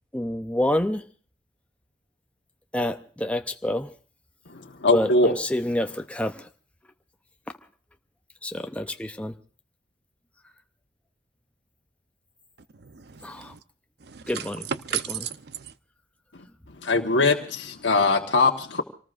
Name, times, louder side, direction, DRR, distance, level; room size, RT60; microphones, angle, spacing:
voice 1, 0.1-1.0 2.7-3.9 4.9-6.5 8.4-9.3 13.2-13.5 14.3-14.6, left 1 dB, 5° left, 0.7 m, -27 dB
voice 2, 4.5-5.3 16.3-16.4 16.8-18.8, left 3 dB, 90° left, 1.3 m, -22 dB
voice 3, 12.8-13.6 14.0-15.7, right 8 dB, 65° right, 0.7 m, -34 dB
27.0 x 19.0 x 2.5 m
head